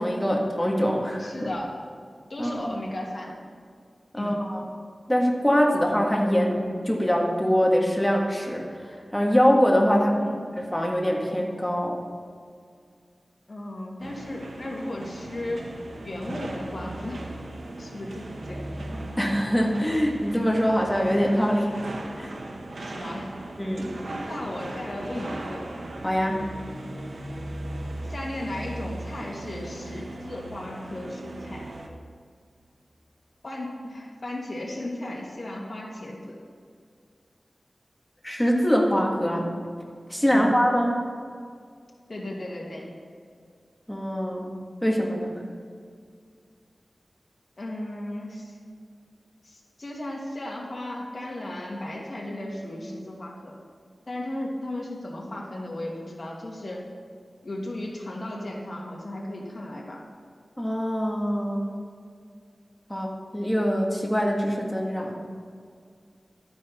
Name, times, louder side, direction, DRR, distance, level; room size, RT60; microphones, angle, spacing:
voice 1, 0.0-1.5 2.4-2.7 4.1-4.6 5.1-10.2 10.6-12.0 19.2-21.7 22.2-22.3 23.6-23.9 26.0-26.4 38.2-39.5 40.1-40.9 43.9-44.5 44.8-45.3 60.6-61.7 62.9-65.1, equal, 5° left, -1 dB, 1.8 m, -23 dB
voice 2, 1.2-1.8 2.3-3.4 4.2-4.4 10.1-10.4 13.5-15.7 16.0-17.3 17.8-18.9 22.8-23.3 24.3-25.7 28.1-31.7 33.4-36.4 40.3-40.5 42.1-42.9 47.6-48.6 49.4-53.5 54.1-56.8 57.4-60.0, left 1 dB, 50° left, -2 dB, 2.4 m, -35 dB
sound 1, 14.0-31.9, right 1 dB, 90° right, 1.2 m, -38 dB
12.0 x 9.6 x 4.4 m, 2.2 s
wide cardioid pair, 90°, 0 cm